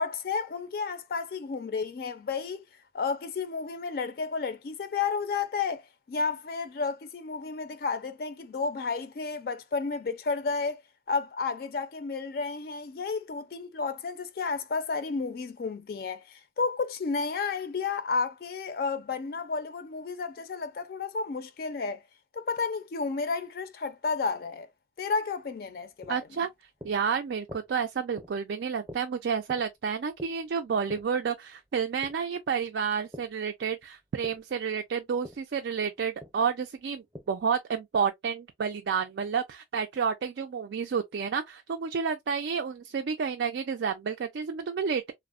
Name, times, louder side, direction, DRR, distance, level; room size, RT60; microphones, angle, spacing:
voice 1, 0.0-2.6 2.9-10.8 11.1-22.0 22.3-24.7 25.0-26.2, left 4 dB, 55° left, 0.4 m, -32 dB
sound 1, 25.5-33.4 33.7-37.6, equal, 15° right, 0.5 m, -49 dB
voice 2, 26.1-26.5 26.8-45.1, right 6 dB, 80° right, 0.4 m, -30 dB
3.4 x 2.0 x 2.3 m
head